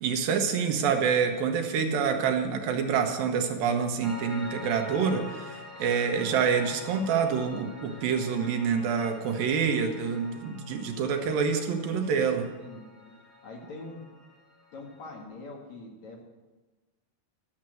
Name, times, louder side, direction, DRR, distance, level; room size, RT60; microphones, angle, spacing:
voice 1, 0.0-12.5, right 6 dB, 75° right, 4 dB, 2.7 m, -27 dB
Piano, 4.0-15.2, left 3 dB, 30° left, 0.9 m, -46 dB
voice 2, 5.9-6.2 12.5-13.1 13.4-14.0 14.7-16.2, left 2 dB, 55° left, 0 dB, 2.7 m, -44 dB
11.5 x 7.4 x 7.6 m, 1.2 s
omnidirectional pair, 4.2 m